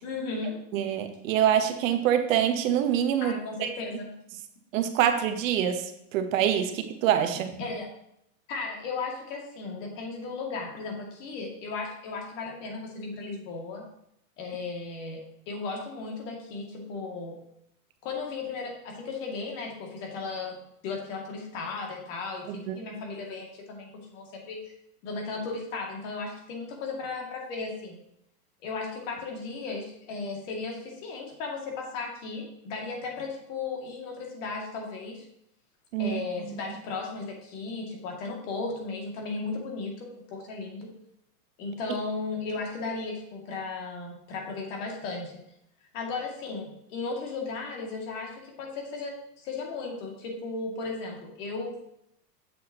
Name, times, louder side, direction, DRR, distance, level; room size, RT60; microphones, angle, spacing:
voice 1, 0.0-0.6 3.2-4.1 7.3-7.9 8.5-13.8 14.4-15.2 15.5-17.4 18.0-20.6 20.8-24.6 25.0-28.0 28.6-35.3 36.0-40.9 41.6-45.4 45.9-51.8, left 4 dB, 55° left, 0 dB, 2.3 m, -35 dB
voice 2, 0.7-3.3 3.6-3.7 4.7-7.5 22.5-22.8 35.9-36.5, right 10 dB, 60° right, 7 dB, 1.0 m, -25 dB
7.7 x 7.1 x 2.9 m, 0.75 s
supercardioid pair, 140°, 46 cm